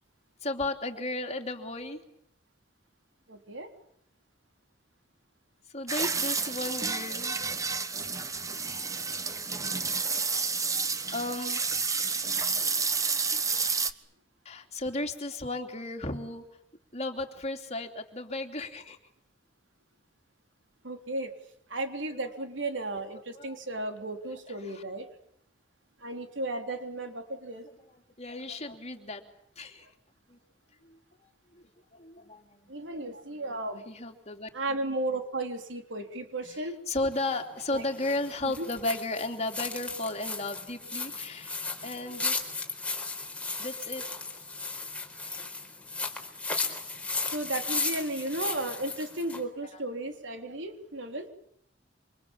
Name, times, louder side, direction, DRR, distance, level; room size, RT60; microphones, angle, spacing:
voice 1, 0.4-2.0 5.7-7.4 8.3-8.5 10.6-11.6 14.4-16.4 16.9-19.0 22.1-22.3 23.3-23.6 24.6-24.8 27.8-29.2 29.6-29.9 30.3-30.4 30.8-31.0 31.2-31.3 31.9-32.7 33.4-33.6 33.9-34.5 36.4-41.5 41.8-42.4 43.6-44.0 45.4-45.5, left 2 dB, 35° left, 5 dB, 3.1 m, -35 dB
voice 2, 3.3-3.7 7.4-7.5 20.8-21.3 21.7-25.1 26.0-27.7 32.7-33.8 34.5-36.8 37.7-37.8 38.4-38.7 47.3-51.3, right 2 dB, 80° right, 5 dB, 3.7 m, -34 dB
sound 1, 5.9-13.9, right 5 dB, 20° right, 1.3 m, -30 dB
sound 2, 37.1-49.4, left 3 dB, 5° left, 4.3 m, -35 dB
28.0 x 26.0 x 7.3 m, 0.72 s
head